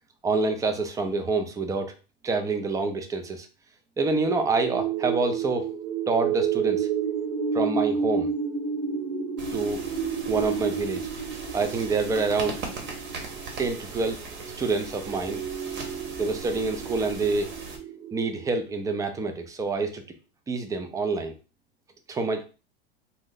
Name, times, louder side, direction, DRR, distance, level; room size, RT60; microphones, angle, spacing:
voice 1, 0.2-1.9 2.2-3.5 4.0-5.7 6.1-6.9 7.5-8.3 9.5-9.8 10.3-11.1 11.5-12.6 13.6-14.2 14.6-15.4 16.2-17.5 18.1-20.0 20.5-21.3 22.1-22.4, right 3 dB, 10° right, 7 dB, 0.4 m, -27 dB
sound 1, 4.3-18.6, right 6 dB, 90° right, 1.1 m, -31 dB
sound 2, 9.4-17.8, right 3 dB, 35° right, 1.0 m, -39 dB
2.6 x 2.1 x 3.8 m, 0.32 s
hypercardioid pair, 110°, 30 cm